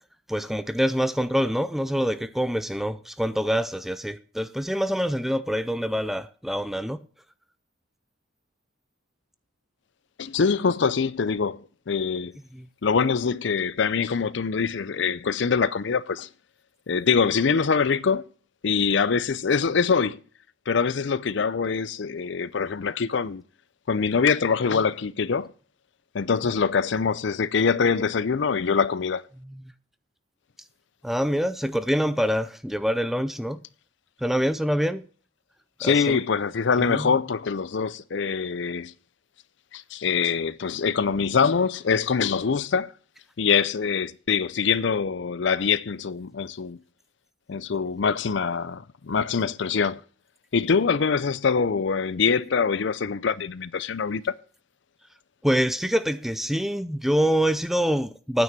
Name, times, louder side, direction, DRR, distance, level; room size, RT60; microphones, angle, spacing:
voice 1, 0.3-7.0 12.5-12.7 26.4-26.5 29.5-29.7 31.0-33.6 34.2-35.0 35.8-36.2 36.8-37.1 55.4-58.4, equal, ahead, 0.4 m, -25 dB
voice 2, 10.2-12.4 12.8-16.3 16.9-18.2 18.6-20.2 20.7-23.4 23.9-25.5 26.1-29.2 35.8-38.9 39.7-42.9 43.4-46.8 47.5-50.0 50.5-54.3, left 5 dB, 60° left, 0.5 m, -24 dB
9.4 x 9.3 x 5.8 m
head